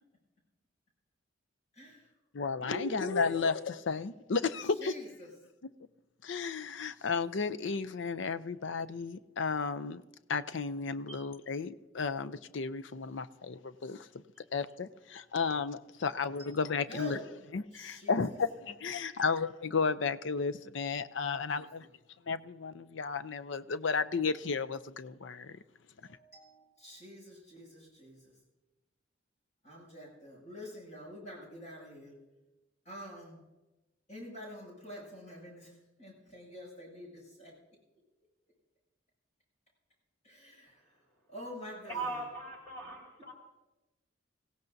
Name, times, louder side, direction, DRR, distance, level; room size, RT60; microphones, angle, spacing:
voice 1, 1.7-2.1 2.6-3.3 4.8-5.3 11.1-11.2 16.9-17.2 17.7-18.2 19.1-19.3 21.3-21.4 26.0-28.3 29.6-32.1 32.9-33.4 34.1-35.7 36.0-37.5 40.2-40.8 41.3-42.0, equal, 35° left, 7.2 m, -46 dB
voice 2, 2.3-4.9 6.2-10.0 10.3-14.1 14.5-17.2 17.5-21.9 22.3-25.6, left 5 dB, 70° left, 0.5 m, -33 dB
voice 3, 41.9-43.3, right 3 dB, 15° left, 2.4 m, -39 dB
26.0 x 16.5 x 2.7 m
head